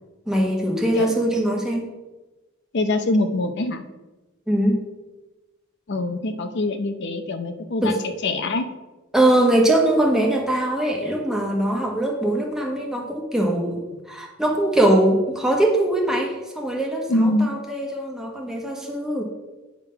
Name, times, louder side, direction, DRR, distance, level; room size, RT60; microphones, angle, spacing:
voice 1, 0.3-1.9 4.5-4.9 7.8-8.0 9.1-19.2, right 1 dB, 5° right, 0 dB, 1.1 m, -21 dB
voice 2, 2.7-3.8 5.9-7.9 8.2-8.7 17.1-17.5, left 2 dB, 55° left, 8 dB, 0.6 m, -24 dB
9.1 x 3.7 x 5.7 m, 1.1 s
head